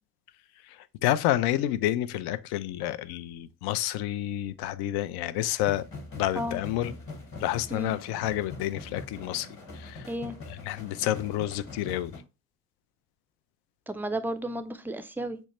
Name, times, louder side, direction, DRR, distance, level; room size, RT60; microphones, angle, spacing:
voice 1, 1.0-5.8 6.2-6.9 7.4-9.5 9.8-10.1 10.5-12.1, left 13 dB, 60° left, 0.5 m, -29 dB
sound 1, 5.6-12.2, left 2 dB, 30° left, 1.2 m, -43 dB
voice 2, 13.9-15.4, right 1 dB, 5° right, 0.4 m, -33 dB
6.1 x 2.2 x 2.9 m
hypercardioid pair, 65°, 43 cm